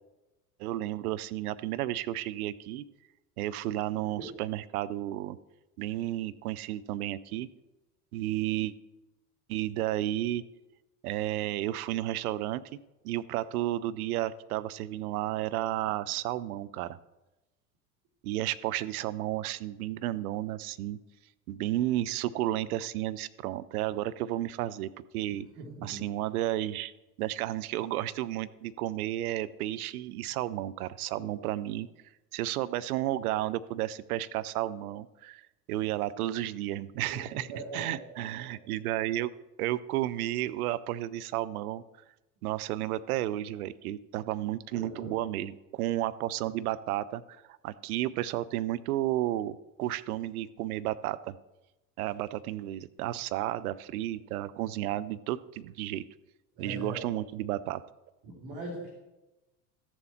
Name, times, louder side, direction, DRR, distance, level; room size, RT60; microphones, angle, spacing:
voice 1, 0.6-2.8 3.4-5.4 5.8-7.5 8.1-8.7 9.5-10.4 11.0-12.6 13.0-17.0 18.2-21.0 21.5-25.5 25.8-26.9 27.2-31.9 32.3-35.4 35.7-37.5 37.7-39.3 39.6-41.8 42.4-47.2 47.5-51.4 52.0-56.1 56.6-57.8, right 14 dB, 70° right, 16 dB, 0.6 m, -32 dB
voice 2, 25.3-26.0 31.1-31.3 37.1-37.2 37.5-37.9 38.1-38.4 44.7-45.1 56.6-57.1 58.2-58.9, right 2 dB, 55° right, -3 dB, 2.6 m, -41 dB
14.0 x 7.2 x 4.3 m, 1.0 s
figure-of-eight pair, 70°, 46 cm